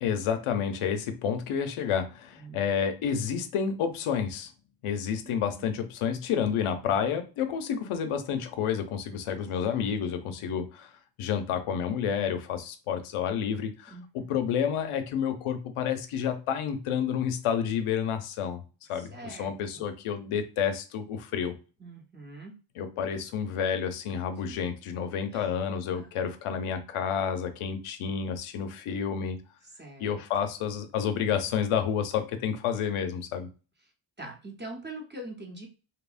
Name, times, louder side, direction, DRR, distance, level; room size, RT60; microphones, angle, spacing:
voice 1, 0.0-4.5 4.8-10.9 11.2-18.6 18.9-21.6 22.8-29.4 30.0-33.5, left 7 dB, 90° left, 8 dB, 0.6 m, -30 dB
voice 2, 5.2-5.7 9.7-9.9 13.9-14.3 18.9-19.9 21.8-22.6 25.3-25.5 25.9-26.3 29.8-30.2 34.2-35.7, right 2 dB, 20° right, 0 dB, 0.8 m, -44 dB
2.9 x 2.0 x 2.4 m, 0.33 s
cardioid pair, 95°, 49 cm